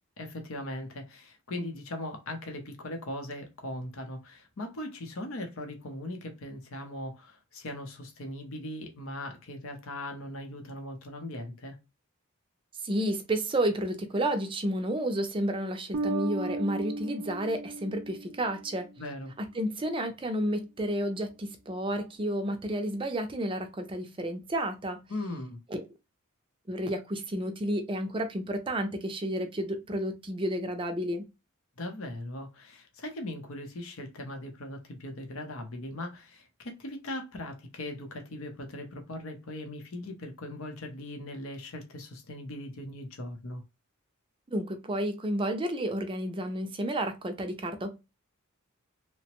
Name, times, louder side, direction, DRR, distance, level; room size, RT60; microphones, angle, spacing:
voice 1, 0.2-11.8 19.0-19.3 25.1-25.6 31.8-43.6, left 1 dB, 65° left, 0.7 m, -39 dB
voice 2, 12.8-18.9 19.4-25.0 26.7-31.3 44.5-47.9, right 1 dB, 25° right, 0.5 m, -31 dB
Bass guitar, 15.9-19.0, right 2 dB, 90° right, 0.4 m, -35 dB
2.9 x 2.1 x 2.9 m
head